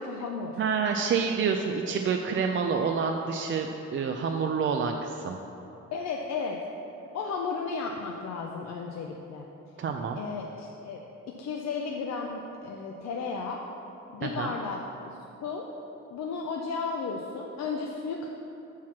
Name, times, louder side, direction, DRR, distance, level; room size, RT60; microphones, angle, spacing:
voice 1, 0.0-0.6 5.9-6.6 7.1-9.5 10.2-11.0 11.4-13.6 14.1-15.7 16.1-18.3, left 4 dB, 60° left, 1 dB, 0.6 m, -34 dB
voice 2, 0.6-5.4 9.8-10.2 14.2-14.5, right 5 dB, 40° right, 3 dB, 0.4 m, -28 dB
5.8 x 4.8 x 5.8 m, 2.9 s
cardioid pair, 90°, 30 cm